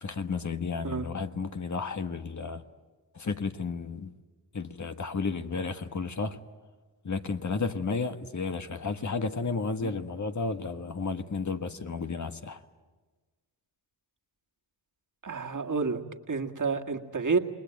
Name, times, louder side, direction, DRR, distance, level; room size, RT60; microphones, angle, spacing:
voice 1, 0.0-2.6 3.1-4.1 4.5-6.4 7.0-12.6, left 4 dB, 45° left, 1.4 m, -32 dB
voice 2, 15.2-17.4, right 4 dB, 50° right, 2.0 m, -30 dB
28.0 x 20.0 x 9.2 m
cardioid pair, 65°, 40 cm